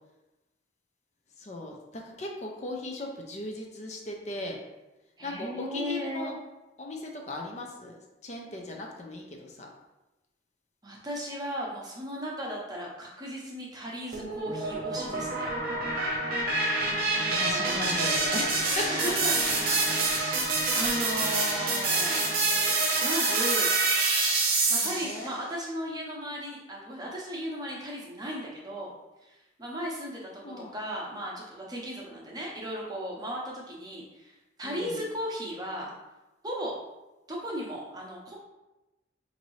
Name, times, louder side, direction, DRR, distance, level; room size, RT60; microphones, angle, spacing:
voice 1, 1.4-4.6 5.2-6.3 6.8-8.0 8.2-9.7 17.4-19.1 24.8-25.3 30.4-30.7 34.6-35.0, left 2 dB, 35° left, 1 dB, 0.5 m, -37 dB
voice 2, 5.2-6.4 10.8-15.5 17.1-18.0 18.8-19.4 19.7-22.3 23.0-23.7 24.7-28.9 29.2-35.9 36.4-36.8 37.3-38.3, equal, 20° right, -3 dB, 0.7 m, -36 dB
sound 1, 14.1-25.2, right 3 dB, 50° right, 0.9 m, -27 dB
5.1 x 2.6 x 3.1 m, 1.0 s
head